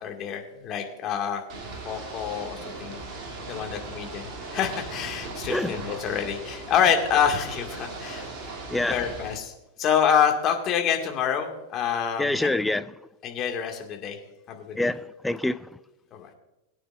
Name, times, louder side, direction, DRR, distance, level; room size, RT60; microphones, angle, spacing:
voice 1, 0.0-1.4 1.8-3.0 3.5-8.3 8.9-9.5 9.8-12.5 13.2-14.2 14.5-14.9 16.1-16.3, left 8 dB, 35° left, 2.0 m, -27 dB
Ocean / Boat Water vehicle, 1.5-9.4, right 3 dB, 40° right, 2.8 m, -38 dB
voice 2, 12.2-12.9 14.7-15.7, left 2 dB, 5° left, 0.4 m, -26 dB
21.5 x 9.3 x 2.5 m
figure-of-eight pair, 90°, 0 cm